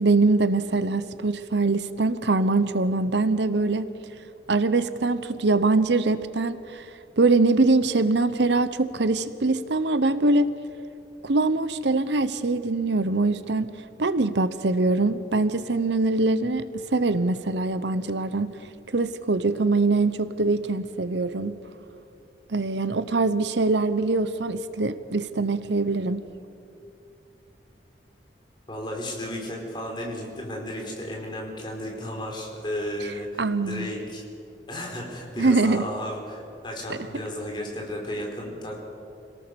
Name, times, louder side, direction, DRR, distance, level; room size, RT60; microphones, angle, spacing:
voice 1, 0.0-3.9 4.5-6.9 7.2-10.5 11.2-13.7 14.0-18.5 18.9-21.5 22.5-26.2 33.4-33.9 35.4-35.8 36.9-37.0, right 3 dB, 75° right, 13 dB, 0.9 m, -23 dB
voice 2, 28.7-34.2 34.7-38.8, left 1 dB, 25° left, 0 dB, 4.6 m, -33 dB
26.5 x 18.0 x 7.0 m, 2.7 s
head